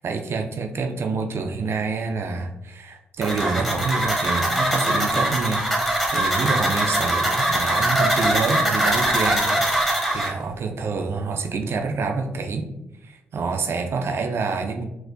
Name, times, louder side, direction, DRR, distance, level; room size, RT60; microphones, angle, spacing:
voice 1, 0.0-12.7 13.0-14.8, right 4 dB, 55° right, 4 dB, 0.4 m, -27 dB
sound 1, 3.2-10.3, right 1 dB, 5° left, 1.1 m, -22 dB
4.3 x 2.1 x 2.6 m, 0.90 s
hypercardioid pair, 45°, 5 cm